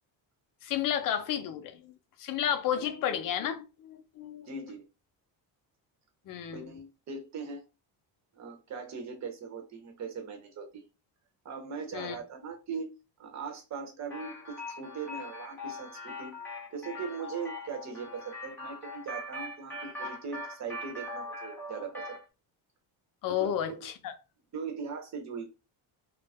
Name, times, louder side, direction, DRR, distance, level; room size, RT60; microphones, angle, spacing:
voice 1, 0.6-4.5 6.3-6.7 11.9-12.2 23.2-24.1, left 10 dB, 50° left, 0.6 m, -32 dB
voice 2, 4.5-4.8 6.5-7.6 8.4-10.8 11.4-12.9 13.2-16.3 16.7-22.2 23.3-23.8 24.5-25.5, right 5 dB, 40° right, 0.8 m, -40 dB
sound 1, 14.1-22.2, left 2 dB, 5° left, 0.7 m, -41 dB
2.4 x 2.1 x 3.4 m
cardioid pair, 145°, 42 cm